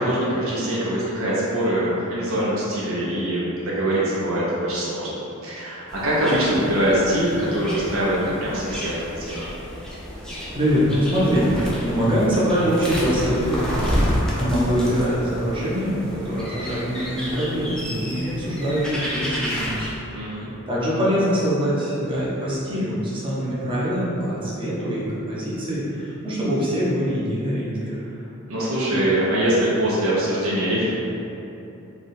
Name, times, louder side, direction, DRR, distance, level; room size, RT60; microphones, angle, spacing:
voice 1, 0.0-9.5 20.1-20.5 28.5-30.9, right 1 dB, 70° right, -8 dB, 0.9 m, -23 dB
sound 1, 5.9-19.9, equal, 5° left, 0.5 m, -30 dB
voice 2, 10.5-19.9 20.7-28.0, equal, 25° right, -8 dB, 0.9 m, -23 dB
3.5 x 2.4 x 4.2 m, 2.9 s
head